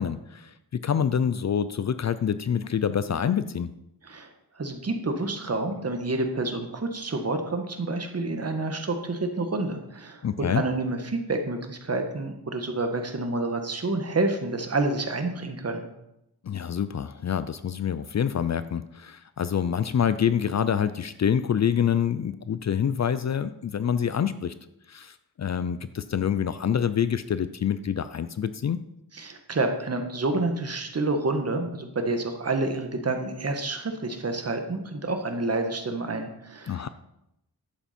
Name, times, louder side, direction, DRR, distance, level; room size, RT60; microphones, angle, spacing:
voice 1, 0.0-3.7 10.2-10.6 16.4-24.5 24.9-28.8 36.7-36.9, left 8 dB, 45° left, 13 dB, 0.5 m, -26 dB
voice 2, 4.5-15.9 29.1-36.9, right 2 dB, 40° right, 5 dB, 1.5 m, -28 dB
11.5 x 8.2 x 4.4 m, 0.84 s
wide cardioid pair, 110°, 38 cm